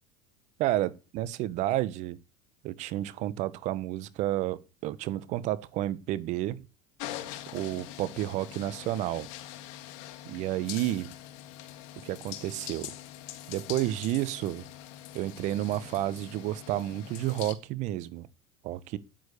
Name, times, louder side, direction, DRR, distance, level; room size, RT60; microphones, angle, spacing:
voice 1, 0.6-2.2 2.6-6.6 7.5-9.3 10.2-11.1 12.0-12.9 13.5-14.6 15.1-18.3 18.6-19.0, right 14 dB, 55° right, 1.2 m, -31 dB
sound 1, 7.0-17.5, left 13 dB, 65° left, 1.7 m, -43 dB
9.4 x 9.3 x 8.4 m
hypercardioid pair, 85°, 14 cm